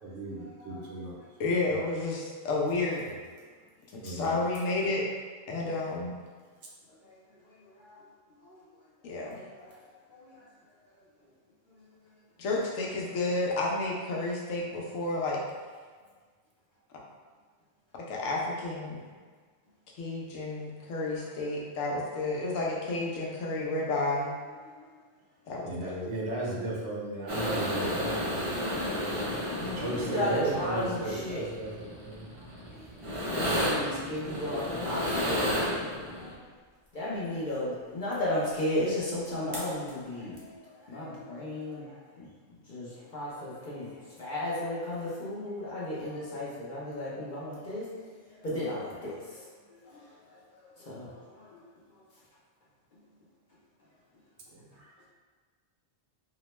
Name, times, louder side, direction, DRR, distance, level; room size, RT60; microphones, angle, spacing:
voice 1, 0.0-1.2 1.7-1.8 4.0-4.4 25.6-29.1 29.8-32.2 54.5-54.9, right 2 dB, 70° right, -4 dB, 0.9 m, -36 dB
voice 2, 1.4-3.0 4.0-5.0 5.5-6.1 9.0-9.4 12.4-15.4 18.1-19.0 20.0-24.3 25.5-26.1, left 2 dB, 85° left, -3 dB, 1.0 m, -31 dB
sound 1, 27.3-36.3 39.3-39.4 39.5-39.9 40.4-40.5, equal, 45° right, 0.4 m, -33 dB
voice 3, 28.7-31.5 32.7-32.8 33.2-36.3 36.9-40.5 40.9-41.9 42.2-42.3 42.7-43.9 44.2-47.8 48.4-49.4 49.9-50.0 50.8-51.6, left 1 dB, 50° left, -8 dB, 0.6 m, -34 dB
2.8 x 2.1 x 3.0 m, 1.5 s
omnidirectional pair, 1.3 m